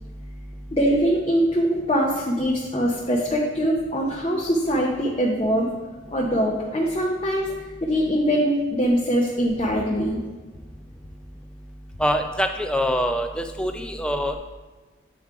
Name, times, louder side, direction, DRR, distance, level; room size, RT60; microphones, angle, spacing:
voice 1, 0.7-5.7 6.1-7.5 7.8-10.2, equal, 30° left, -3 dB, 0.7 m, -22 dB
voice 2, 12.0-14.4, equal, 5° left, 5 dB, 0.3 m, -24 dB
7.9 x 3.7 x 4.6 m, 1.3 s
head